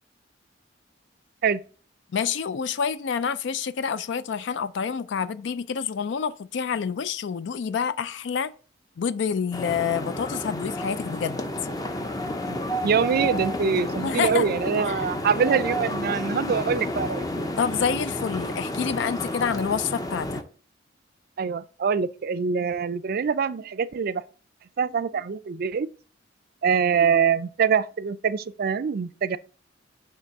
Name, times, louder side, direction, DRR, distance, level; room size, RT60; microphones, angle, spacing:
voice 1, 2.1-8.5 9.0-11.4 14.0-14.5 14.9-15.0 17.6-20.4, left 6 dB, 70° left, 0.4 m, -27 dB
sound 1, 9.5-20.4, left 1 dB, 20° left, 0.6 m, -31 dB
voice 2, 12.8-17.5 21.4-24.2 24.8-25.9 26.6-29.4, right 6 dB, 55° right, 0.4 m, -24 dB
6.9 x 3.1 x 5.9 m
head